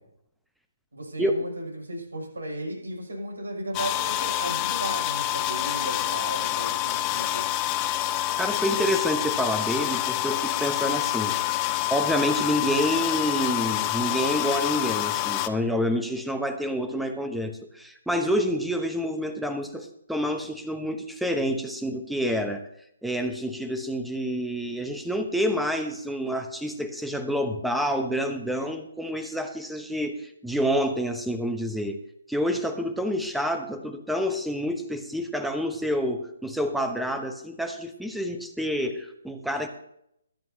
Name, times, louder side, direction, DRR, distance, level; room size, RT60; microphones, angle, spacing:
voice 1, 0.9-7.4, right 1 dB, 70° right, 0 dB, 6.6 m, -35 dB
sound 1, 3.7-15.5, left 14 dB, 20° left, 0.8 m, -27 dB
voice 2, 8.4-22.6 23.0-32.0 32.3-39.7, equal, ahead, 7 dB, 1.0 m, -28 dB
21.5 x 11.0 x 2.9 m, 0.74 s
figure-of-eight pair, 135°, 0 cm